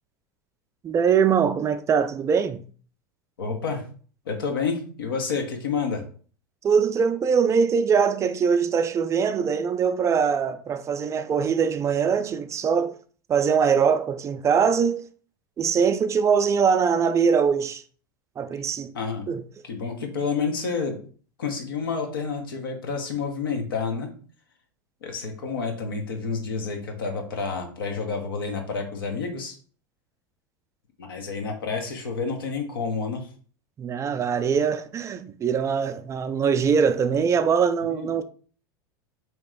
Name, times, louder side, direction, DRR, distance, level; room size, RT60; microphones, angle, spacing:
voice 1, 0.8-2.6 6.6-13.0 13.3-15.0 15.6-17.8 18.4-18.9 19.3-19.4 33.8-38.2, right 6 dB, 25° right, 0.3 m, -22 dB
voice 2, 3.4-3.8 4.3-6.0 18.9-19.3 19.6-21.0 21.4-24.1 25.0-29.5 31.0-33.3 37.9-38.1, left 5 dB, 90° left, 0.9 m, -29 dB
3.2 x 2.9 x 3.6 m
hypercardioid pair, 95°, 11 cm